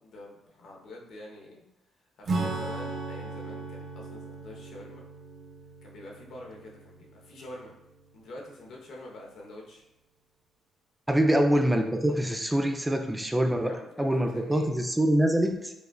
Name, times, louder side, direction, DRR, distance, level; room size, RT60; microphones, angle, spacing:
voice 1, 0.0-1.6 2.2-5.0 5.8-7.7 8.1-9.8 11.2-11.3 13.6-14.7, left 1 dB, 70° left, -1 dB, 0.9 m, -46 dB
Acoustic guitar / Strum, 2.3-8.2, right 3 dB, 55° right, 0.7 m, -37 dB
voice 2, 11.1-15.7, right 1 dB, 10° right, 5 dB, 0.4 m, -25 dB
5.0 x 2.4 x 2.3 m, 0.90 s
cardioid pair, 90°, 0 cm